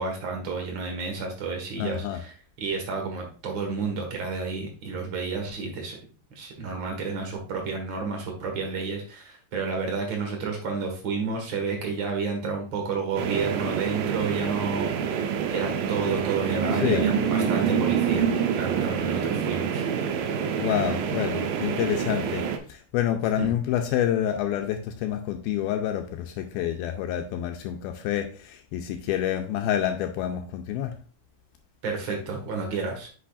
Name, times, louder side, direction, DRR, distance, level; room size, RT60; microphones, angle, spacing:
voice 1, 0.0-6.0 6.3-15.2 15.5-19.9 23.4-23.5 31.8-33.1, right 4 dB, 60° right, 1.3 m, -31 dB
voice 2, 1.8-2.2 16.8-17.1 20.6-30.9, left 10 dB, 80° left, 2.3 m, -28 dB
sound 1, 13.2-22.6, right 7 dB, 75° right, 2.3 m, -26 dB
8.5 x 5.6 x 2.4 m
omnidirectional pair, 4.6 m